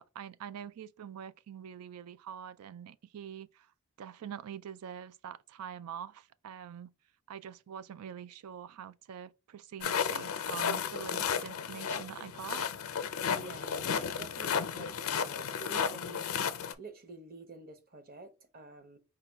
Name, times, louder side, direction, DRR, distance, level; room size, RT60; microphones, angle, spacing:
voice 1, 0.0-3.7 4.0-6.9 7.3-12.7, right 8 dB, 80° right, 0.3 m, -45 dB
sound 1, 9.8-16.7, left 7 dB, 70° left, 0.5 m, -33 dB
voice 2, 13.3-16.3 16.8-19.0, right 3 dB, 40° right, 0.8 m, -49 dB
4.9 x 2.2 x 4.4 m
head